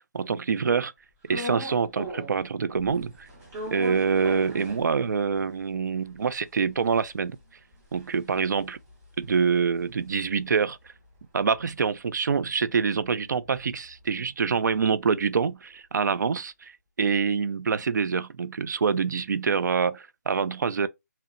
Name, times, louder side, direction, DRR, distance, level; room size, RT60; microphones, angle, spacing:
voice 1, 0.1-0.9 1.3-3.3 3.7-7.4 7.9-8.8 9.2-10.8 11.3-16.7 17.0-20.9, right 5 dB, 80° right, 0.4 m, -26 dB
sound 1, 1.3-2.5 2.8-5.4 5.8-5.9 6.0-10.5 10.9-14.9, equal, 15° right, 0.6 m, -41 dB
2.8 x 2.1 x 2.4 m
hypercardioid pair, 165°, 10 cm